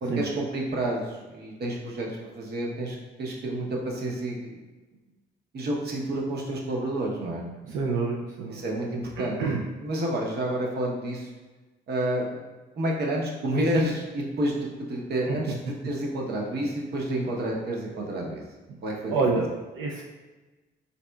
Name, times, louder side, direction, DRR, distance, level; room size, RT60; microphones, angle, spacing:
voice 1, 0.0-2.1 2.3-4.6 5.5-7.4 8.5-9.4 9.8-11.3 11.9-12.3 12.8-18.4 18.8-19.2, right 1 dB, 55° right, -1 dB, 0.8 m, -29 dB
voice 2, 7.6-8.6 9.2-9.6 15.3-15.4 19.1-19.5 19.8-20.0, right 4 dB, 85° right, -1 dB, 0.5 m, -27 dB
4.1 x 3.6 x 2.2 m, 1.2 s
cardioid pair, 90°, 20 cm